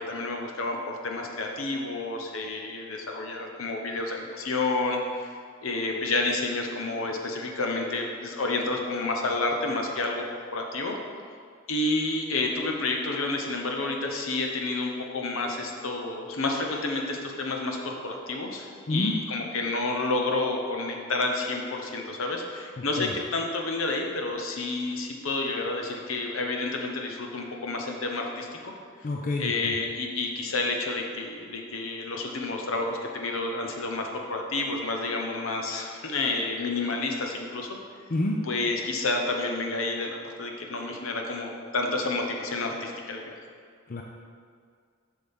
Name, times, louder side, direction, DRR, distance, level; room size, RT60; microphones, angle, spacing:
voice 1, 0.0-5.3 5.6-10.2 10.5-11.0 11.7-28.7 29.4-37.8 38.5-43.3, left 2 dB, 70° left, 2 dB, 0.9 m, -30 dB
voice 2, 22.8-23.1 29.0-29.8 38.1-38.4 43.9-44.0, left 2 dB, 40° left, 0 dB, 0.5 m, -28 dB
8.1 x 6.1 x 3.6 m, 2.1 s
head